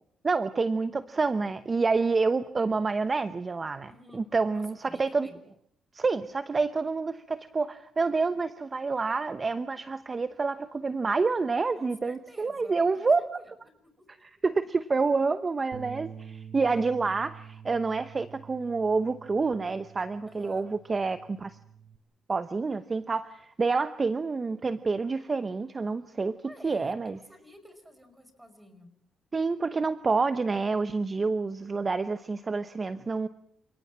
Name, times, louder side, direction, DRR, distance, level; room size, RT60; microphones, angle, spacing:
voice 1, 0.2-5.3 5.9-13.2 14.2-21.6 22.3-26.4 26.6-27.2 29.3-33.3, right 4 dB, 30° right, 13 dB, 0.9 m, -28 dB
voice 2, 3.9-4.3 4.5-5.4 11.7-13.5 14.0-14.1 20.3-20.7 26.4-27.0 27.3-28.9, equal, 10° right, 9 dB, 5.7 m, -51 dB
Bass guitar, 15.7-22.0, right 8 dB, 55° right, 1.7 m, -47 dB
29.0 x 18.5 x 7.6 m, 0.70 s
cardioid pair, 90°, 0 cm